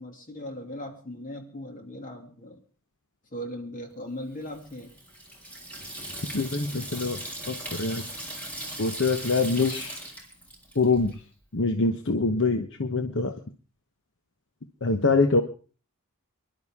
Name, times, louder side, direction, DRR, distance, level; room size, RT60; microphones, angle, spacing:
voice 1, 0.0-2.6 3.3-4.9, left 1 dB, 40° left, 3 dB, 2.5 m, -38 dB
Water tap faucet / Sink (filling or washing), 4.4-11.2, right 1 dB, 5° left, 3.7 m, -39 dB
voice 2, 6.3-7.2 7.5-8.1 8.8-10.0 10.7-11.2 11.5-13.3 14.8-15.4, left 3 dB, 60° left, 6 dB, 1.1 m, -24 dB
25.0 x 11.5 x 3.7 m, 0.39 s
head